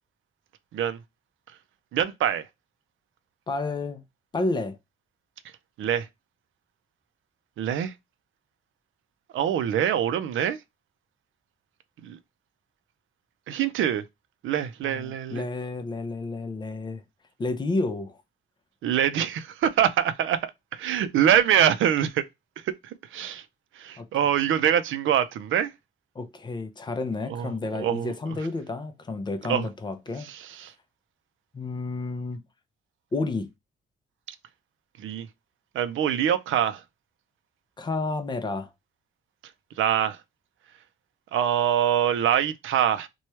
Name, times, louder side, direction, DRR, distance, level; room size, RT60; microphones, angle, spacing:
voice 1, 1.9-2.4 5.8-6.1 7.6-7.9 9.3-10.6 12.0-12.2 13.5-14.0 14.4-15.4 18.8-22.2 22.6-23.4 23.8-25.7 27.3-27.5 27.8-28.4 29.4-29.7 30.2-30.7 35.0-35.3 35.7-36.8 39.8-40.2 41.3-43.1, right 10 dB, 70° right, 0.5 m, -24 dB
voice 2, 3.5-4.0 4.3-4.8 14.8-17.0 17.4-18.2 24.0-24.1 26.1-30.3 31.5-32.4 33.1-33.5 37.8-38.7, left 3 dB, 20° left, 0.5 m, -30 dB
3.0 x 2.3 x 4.2 m
cardioid pair, 155°, 21 cm